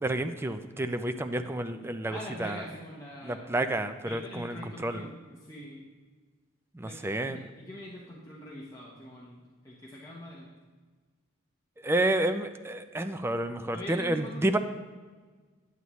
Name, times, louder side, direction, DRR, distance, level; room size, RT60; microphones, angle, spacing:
voice 1, 0.0-2.6 3.2-5.0 6.7-7.4 11.8-14.6, right 1 dB, 10° right, 9 dB, 0.4 m, -30 dB
voice 2, 2.1-3.5 4.0-5.8 6.8-7.0 7.3-10.5 13.7-14.6, left 1 dB, 15° left, -5 dB, 0.9 m, -43 dB
9.3 x 8.2 x 3.1 m, 1.4 s
head